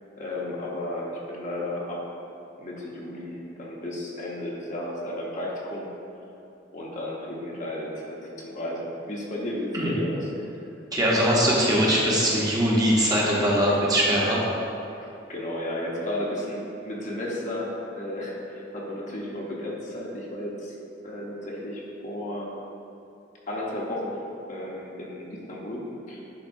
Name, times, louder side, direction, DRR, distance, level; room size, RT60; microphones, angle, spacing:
voice 1, 0.2-2.2 2.6-5.9 6.7-10.3 14.9-20.7 21.0-22.5 23.5-24.2 24.5-26.2, left 1 dB, 45° left, -3 dB, 0.9 m, -33 dB
voice 2, 10.9-14.4, equal, 20° right, -5 dB, 1.0 m, -21 dB
9.9 x 3.9 x 2.6 m, 2.7 s
head